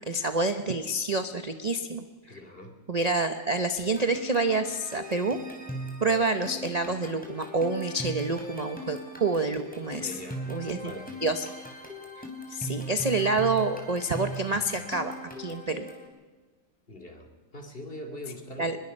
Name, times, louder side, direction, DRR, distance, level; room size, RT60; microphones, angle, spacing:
voice 1, 0.0-2.4 2.9-5.4 6.0-10.2 10.5-10.9 11.2-11.5 12.2-15.9 18.6-18.8, right 3 dB, 35° right, 8 dB, 0.7 m, -28 dB
voice 2, 2.2-2.7 10.0-11.1 16.9-18.7, left 1 dB, 30° left, 5 dB, 2.7 m, -42 dB
sound 1, 3.8-16.1, right 1 dB, 5° left, 3.4 m, -39 dB
24.5 x 21.0 x 5.5 m, 1.4 s
omnidirectional pair, 1.9 m